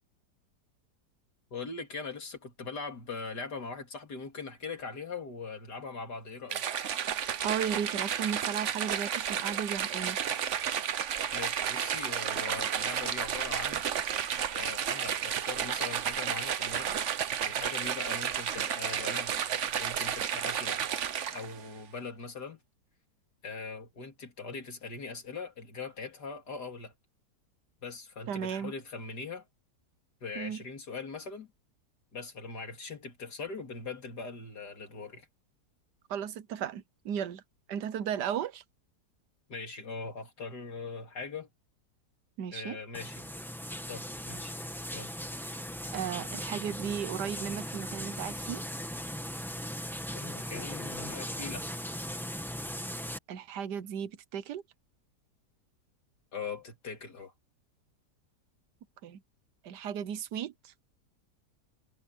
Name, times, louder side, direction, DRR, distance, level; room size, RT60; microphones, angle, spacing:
voice 1, 1.5-6.7 11.3-13.9 14.5-17.0 17.4-19.4 19.8-20.8 21.2-22.6 23.4-26.9 27.8-29.5 30.2-31.5 32.1-35.3 39.5-41.5 42.5-43.3 43.9-44.6 44.9-45.2 50.1-51.7 56.3-57.3, left 4 dB, 80° left, 3.6 m, -41 dB
sound 1, 6.5-21.6, right 8 dB, 55° right, 1.1 m, -32 dB
voice 2, 7.4-10.2 28.3-28.7 30.3-30.6 36.1-37.4 37.7-38.6 42.4-42.8 45.9-48.6 53.3-54.6 59.0-59.2 59.6-60.7, right 8 dB, 85° right, 1.5 m, -35 dB
sound 2, 42.9-53.2, equal, ahead, 1.3 m, -38 dB
omnidirectional pair, 1.7 m